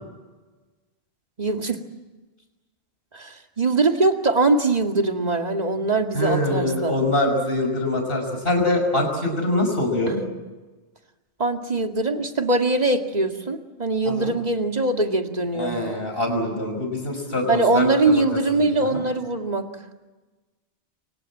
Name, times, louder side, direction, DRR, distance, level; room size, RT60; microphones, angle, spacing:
voice 1, 1.4-1.8 3.1-7.0 10.1-10.3 11.4-15.8 17.5-19.6, right 2 dB, 40° right, 4 dB, 2.3 m, -22 dB
voice 2, 6.1-10.2 14.0-14.3 15.5-18.2 18.9-19.1, left 1 dB, 60° left, 4 dB, 6.2 m, -24 dB
29.5 x 24.5 x 7.5 m, 1.2 s
omnidirectional pair, 1.1 m